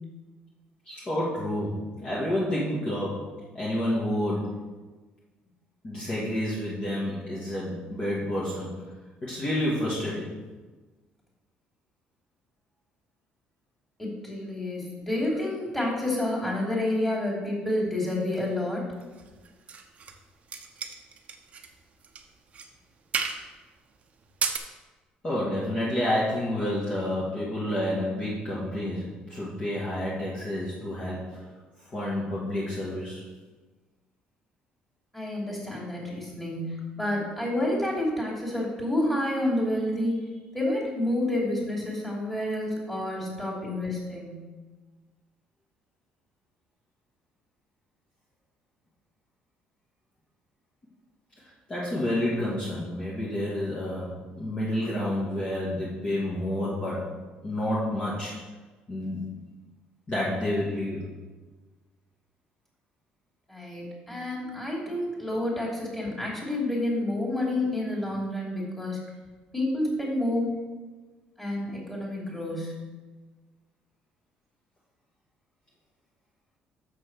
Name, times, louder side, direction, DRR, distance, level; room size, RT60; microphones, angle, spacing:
voice 1, 0.9-4.5 5.8-8.7 9.2-10.4 25.2-31.4 31.8-33.2 51.7-57.1 57.4-58.4 58.9-59.2 60.1-61.1, left 1 dB, 30° left, -7 dB, 2.0 m, -29 dB
voice 2, 14.0-18.9 35.1-40.2 40.5-44.4 63.5-69.0 69.5-70.6 71.4-72.7, left 1 dB, 10° left, -5 dB, 2.9 m, -29 dB
sound 1, 19.1-20.2 20.5-21.7 22.0-22.2 22.5-22.7 23.1-23.4 24.2-24.6, right 6 dB, 40° right, 0.8 m, -32 dB
6.8 x 6.2 x 6.0 m, 1.3 s
cardioid pair, 125°, 3 cm